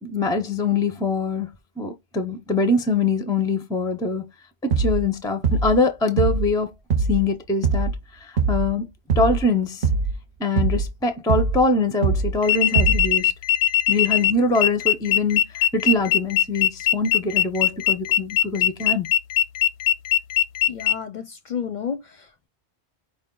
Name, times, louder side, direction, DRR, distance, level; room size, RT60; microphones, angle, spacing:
voice 1, 0.0-1.5 1.8-4.3 4.7-6.7 7.0-8.9 9.2-9.9 10.4-13.3 13.9-19.1, left 3 dB, 5° left, 0.3 m, -23 dB
sound 1, 4.7-5.1 5.4-5.8 6.2-6.5 6.9-7.3 7.6-8.0 8.4-8.7 9.1-9.5 9.8-10.2 10.6-10.9 11.3-11.7 12.0-12.4 12.8-13.2, right 4 dB, 55° right, 0.7 m, -22 dB
sound 2, 12.4-20.9, left 11 dB, 85° left, 0.9 m, -20 dB
voice 2, 20.7-22.5, left 7 dB, 55° left, 0.5 m, -32 dB
4.9 x 2.3 x 3.7 m
omnidirectional pair, 1.1 m